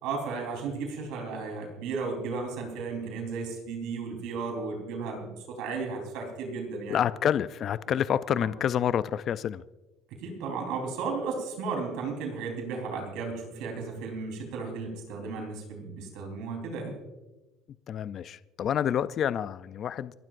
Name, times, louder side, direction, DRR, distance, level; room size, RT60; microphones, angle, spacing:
voice 1, 0.0-7.0 8.3-8.5 10.1-17.0, right 4 dB, 70° right, 2 dB, 3.9 m, -34 dB
voice 2, 6.9-9.6 17.9-20.1, left 9 dB, 45° left, 14 dB, 0.4 m, -28 dB
28.5 x 12.0 x 2.6 m, 1.1 s
cardioid pair, 130°, 0 cm